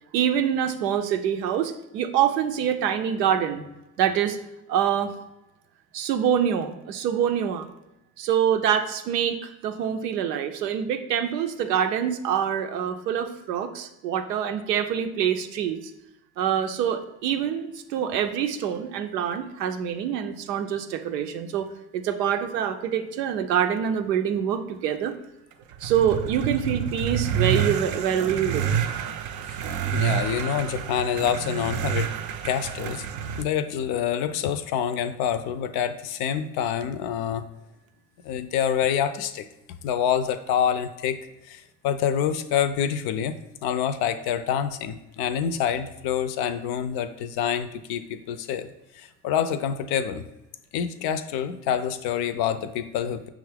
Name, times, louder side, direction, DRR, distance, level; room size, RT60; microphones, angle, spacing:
voice 1, 0.1-3.7 4.0-4.4 4.7-5.1 5.9-7.7 8.2-15.8 16.4-25.1 25.8-28.7, right 9 dB, 90° right, 8 dB, 0.6 m, -25 dB
sound 1, 25.6-33.4, right 8 dB, 40° right, 0.4 m, -28 dB
voice 2, 29.9-32.1 32.4-33.0 33.4-37.5 38.2-39.5 39.8-41.2 41.5-48.7 49.0-50.2 50.7-53.3, left 8 dB, 55° left, 11 dB, 0.5 m, -27 dB
5.7 x 2.5 x 3.3 m, 0.93 s
hypercardioid pair, 75°, 47 cm